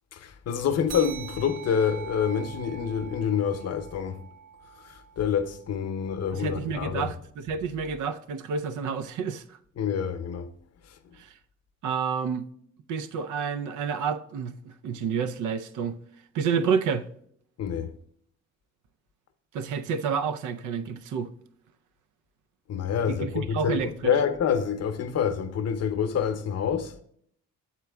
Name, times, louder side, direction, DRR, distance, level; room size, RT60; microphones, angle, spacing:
voice 1, 0.1-4.2 4.8-7.1 9.8-10.5 10.9-11.0 17.6-17.9 22.7-27.0, left 7 dB, 55° left, 0.8 m, -27 dB
sound 1, 0.9-5.8, right 8 dB, 55° right, 0.9 m, -44 dB
voice 2, 6.3-9.4 11.2-11.3 11.8-12.5 12.9-16.0 16.3-17.1 19.5-21.3 23.1-24.1, right 6 dB, 80° right, 0.6 m, -29 dB
7.2 x 4.5 x 3.4 m
cardioid pair, 90°, 30 cm